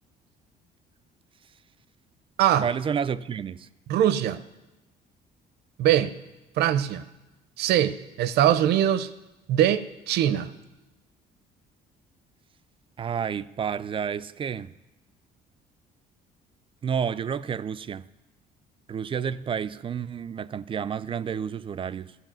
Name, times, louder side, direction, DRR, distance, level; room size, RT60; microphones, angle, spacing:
voice 1, 2.6-3.7 13.0-14.7 16.8-18.1 18.9-22.2, right 7 dB, 30° right, 0.3 m, -30 dB
voice 2, 3.9-4.4 5.8-6.1 6.6-7.0 7.6-9.1 9.5-10.5, right 11 dB, 75° right, 0.7 m, -22 dB
14.0 x 5.6 x 7.4 m
cardioid pair, 110°, 17 cm